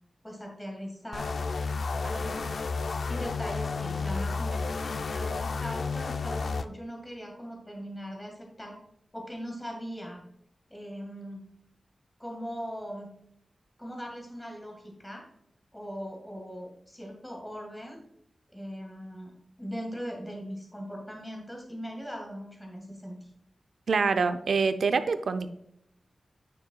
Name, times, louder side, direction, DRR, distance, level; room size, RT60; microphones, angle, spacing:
voice 1, 0.2-1.3 2.0-2.6 3.1-8.8 9.1-10.2 10.7-11.4 12.2-13.1 13.8-15.2 15.7-18.0 18.5-19.3 19.6-23.2, equal, 10° left, 0 dB, 1.8 m, -40 dB
sound 1, 1.1-6.6, left 4 dB, 65° left, 0.4 m, -31 dB
voice 2, 23.9-25.5, right 4 dB, 80° right, 10 dB, 0.5 m, -25 dB
9.3 x 6.7 x 2.3 m, 0.72 s
wide cardioid pair, 140°, 0 cm